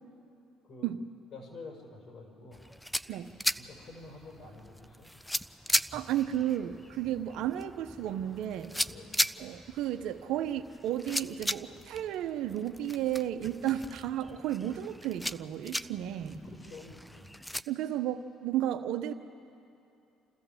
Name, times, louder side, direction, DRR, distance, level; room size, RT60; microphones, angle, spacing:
voice 1, 1.3-2.7 3.6-5.1 7.2-7.3 8.9-9.1 16.4-17.3, left 3 dB, 60° left, 0 dB, 6.0 m, -48 dB
sound 1, 2.5-17.6, equal, 5° left, 0.5 m, -37 dB
voice 2, 5.9-8.7 9.4-16.4 17.7-19.1, right 11 dB, 75° right, 8 dB, 1.1 m, -33 dB
28.5 x 14.0 x 7.4 m, 2.7 s
supercardioid pair, 70°, 0 cm